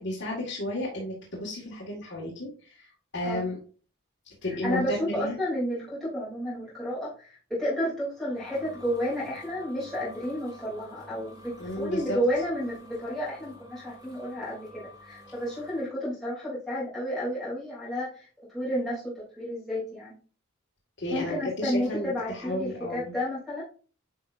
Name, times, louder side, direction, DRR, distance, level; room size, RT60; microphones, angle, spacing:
voice 1, 0.0-2.9 3.1-3.6 4.4-5.4 11.6-12.2 21.0-23.1, left 1 dB, 55° left, -5 dB, 1.8 m, -33 dB
voice 2, 4.6-20.2 21.1-23.6, equal, ahead, -10 dB, 2.9 m, -31 dB
sound 1, 7.9-15.9, left 1 dB, 20° right, 2.0 m, -50 dB
9.0 x 4.7 x 2.6 m, 0.39 s
head